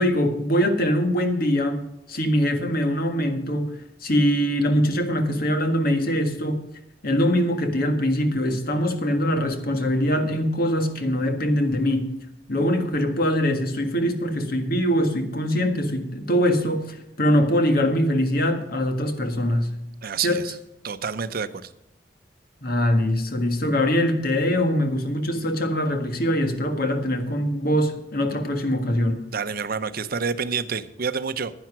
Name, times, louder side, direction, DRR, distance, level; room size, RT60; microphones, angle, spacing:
voice 1, 0.0-1.8 2.1-3.7 4.0-6.6 7.0-12.1 12.5-19.7 20.2-20.4 22.6-29.2, equal, 55° left, 6 dB, 1.7 m, -23 dB
voice 2, 20.0-20.6 20.8-21.7 29.3-31.5, right 5 dB, 55° right, 12 dB, 0.7 m, -28 dB
10.5 x 10.5 x 6.0 m, 0.83 s
head